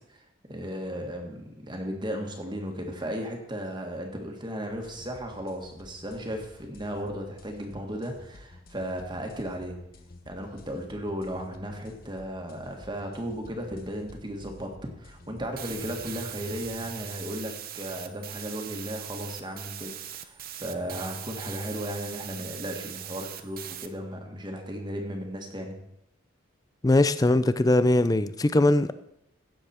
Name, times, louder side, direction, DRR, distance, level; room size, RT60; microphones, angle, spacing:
voice 1, 0.1-9.8 10.3-14.7 15.0-25.9, equal, 25° right, 1.7 m, -35 dB
sound 1, 4.7-17.1, left 2 dB, 50° left, 0.9 m, -51 dB
sound 2, 15.6-23.9, right 11 dB, 50° right, 0.7 m, -40 dB
voice 2, 26.8-28.9, left 2 dB, 20° left, 0.4 m, -21 dB
16.0 x 7.0 x 4.4 m
head